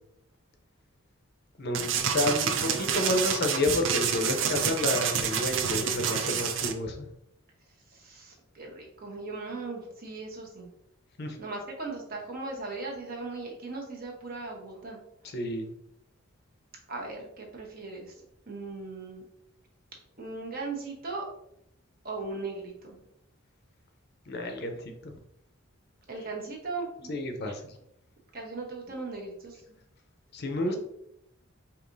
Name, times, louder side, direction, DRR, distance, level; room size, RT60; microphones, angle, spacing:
sound 1, 1.7-6.7, right 7 dB, 60° right, 0.4 m, -28 dB
voice 1, 2.1-7.1 11.2-11.4 15.2-15.7 24.3-25.2 27.1-27.6 30.3-30.8, left 1 dB, 50° left, 4 dB, 0.6 m, -30 dB
voice 2, 5.7-6.5 7.9-10.7 11.4-15.0 16.9-18.1 18.5-19.2 20.2-21.3 22.0-23.0 26.1-27.2 28.3-29.8 30.6-30.8, right 3 dB, 45° right, -1 dB, 1.0 m, -38 dB
4.8 x 2.9 x 2.6 m, 0.77 s
head